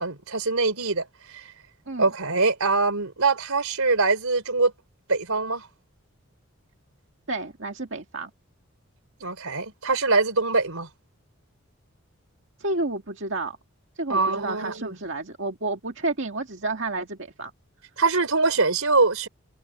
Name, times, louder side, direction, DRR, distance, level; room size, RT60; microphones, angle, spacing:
voice 1, 0.0-1.4 2.0-4.7 5.1-5.7 9.2-10.9 14.1-15.0 18.0-19.3, right 3 dB, 85° right, 4.0 m, -23 dB
voice 2, 7.3-8.3 12.6-13.6 14.0-17.5, right 2 dB, 60° right, 2.1 m, -30 dB
head